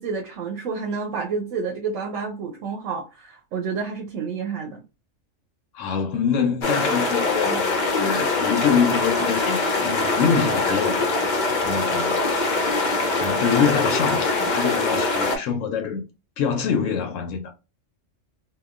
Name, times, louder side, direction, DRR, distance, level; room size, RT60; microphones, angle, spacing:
voice 1, 0.0-4.8, right 5 dB, 90° right, 1.0 m, -29 dB
voice 2, 5.7-11.2 11.6-12.2 13.1-16.0 16.4-17.5, left 7 dB, 90° left, 1.0 m, -25 dB
sound 1, 6.6-15.4, left 3 dB, 50° left, 0.6 m, -23 dB
2.8 x 2.2 x 2.4 m
omnidirectional pair, 1.3 m